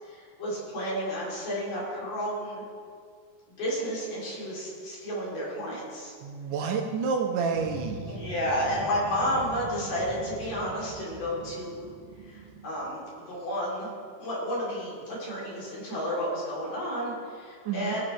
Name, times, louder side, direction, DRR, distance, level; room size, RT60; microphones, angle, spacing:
voice 1, 0.1-2.6 3.6-6.1 8.1-11.9 12.3-13.9 14.2-18.0, equal, 85° left, -6 dB, 5.3 m, -31 dB
voice 2, 6.2-8.2 17.7-17.9, right 5 dB, 85° right, 3 dB, 2.5 m, -29 dB
sound 1, 7.5-13.1, right 3 dB, 50° right, 1.6 m, -42 dB
18.5 x 11.0 x 3.5 m, 2.1 s
omnidirectional pair, 3.6 m